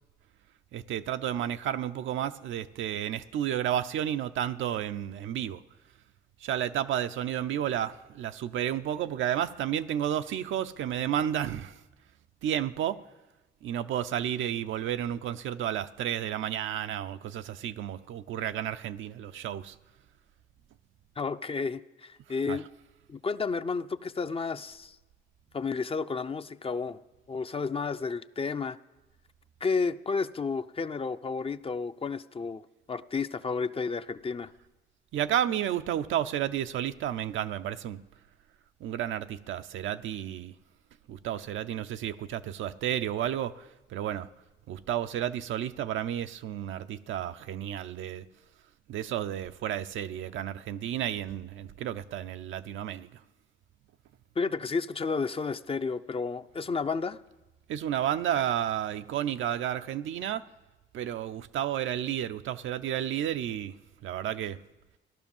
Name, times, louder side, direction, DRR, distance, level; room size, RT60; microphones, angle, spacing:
voice 1, 0.7-5.6 6.4-11.8 12.4-13.0 13.6-19.8 22.5-22.6 35.1-38.0 38.8-40.5 41.1-44.3 44.7-48.2 48.9-53.1 57.7-60.4 60.9-63.8 64.0-64.6, right 10 dB, 75° right, 0.7 m, -32 dB
voice 2, 21.2-22.7 23.1-25.0 25.5-27.0 27.3-28.8 29.6-32.6 32.9-34.5 54.4-57.2, left 4 dB, 30° left, 0.6 m, -31 dB
15.0 x 11.5 x 7.2 m
cardioid pair, 90°, 20 cm